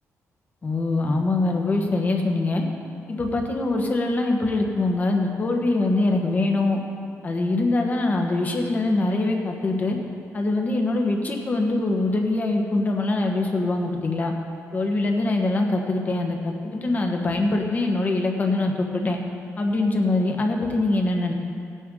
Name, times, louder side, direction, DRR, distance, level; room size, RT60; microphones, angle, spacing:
voice 1, 0.6-2.6 3.1-6.8 7.2-10.0 10.3-14.3 14.7-19.2 19.6-21.3, left 2 dB, 30° left, 2 dB, 1.4 m, -23 dB
16.5 x 9.4 x 3.9 m, 2.4 s
cardioid pair, 130°, 5 cm